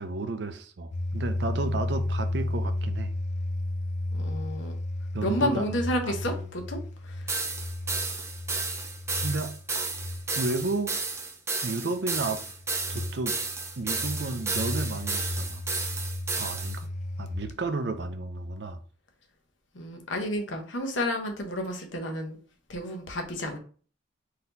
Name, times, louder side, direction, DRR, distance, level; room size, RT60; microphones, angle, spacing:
voice 1, 0.0-3.1 5.1-6.4 9.2-9.9 10.4-10.9 11.6-12.4 12.9-13.4 13.8-15.6 16.4-16.9 17.2-18.8, right 3 dB, 60° right, 0.5 m, -32 dB
sound 1, 0.9-10.9 12.1-17.7, left 1 dB, 40° left, 0.4 m, -34 dB
voice 2, 4.1-4.7 5.2-7.2 19.7-22.4 22.7-23.6, left 1 dB, 80° left, 0.9 m, -31 dB
sound 2, 7.3-16.8, right 4 dB, 15° right, 0.5 m, -32 dB
4.1 x 2.8 x 3.9 m
head